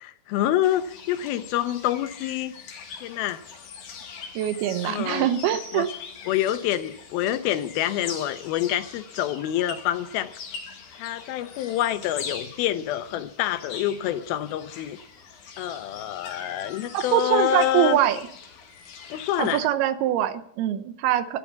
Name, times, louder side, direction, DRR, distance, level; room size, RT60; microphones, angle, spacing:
voice 1, 0.0-2.5 3.0-3.4 4.8-5.3 5.7-5.9 6.3-10.3 11.0-15.0 15.6-18.0 19.1-19.7, left 12 dB, 80° left, 12 dB, 2.6 m, -27 dB
sound 1, 0.6-19.6, left 6 dB, 55° left, 3.2 m, -42 dB
voice 2, 4.4-5.9 16.9-18.2 19.4-21.4, right 12 dB, 90° right, 11 dB, 2.9 m, -23 dB
12.5 x 12.0 x 7.1 m, 0.67 s
omnidirectional pair, 4.4 m